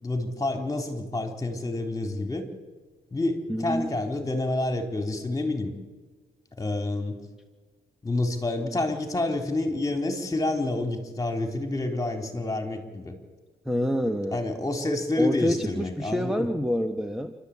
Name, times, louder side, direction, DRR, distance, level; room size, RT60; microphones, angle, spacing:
voice 1, 0.0-2.5 3.1-5.7 6.6-7.2 8.0-13.1 14.3-16.4, left 2 dB, 15° left, 4 dB, 3.8 m, -28 dB
voice 2, 3.5-4.0 13.6-14.4 15.2-17.3, equal, ahead, 7 dB, 1.3 m, -27 dB
28.0 x 12.5 x 8.6 m, 1.4 s
cardioid pair, 90°, 20 cm